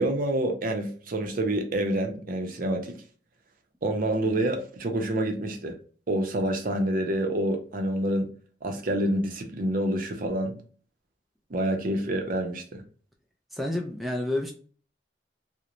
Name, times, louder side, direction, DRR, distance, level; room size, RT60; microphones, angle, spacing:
voice 1, 0.0-2.9 3.8-5.8 6.1-8.3 8.6-10.6 11.5-12.8, right 1 dB, 50° right, 0.6 m, -27 dB
voice 2, 13.5-14.5, left 1 dB, ahead, 0.3 m, -29 dB
2.9 x 2.0 x 2.4 m
head